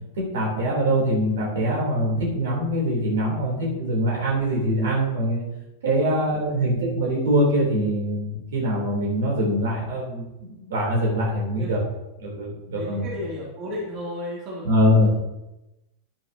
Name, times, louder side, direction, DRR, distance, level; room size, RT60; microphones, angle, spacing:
voice 1, 0.2-5.4 5.8-11.8 12.2-13.0 14.6-15.1, equal, 60° right, -3 dB, 3.5 m, -23 dB
voice 2, 5.9-6.5 11.5-11.8 12.7-15.1, left 1 dB, 35° right, -5 dB, 3.0 m, -35 dB
11.0 x 9.0 x 2.9 m, 0.95 s
figure-of-eight pair, 90°, 0 cm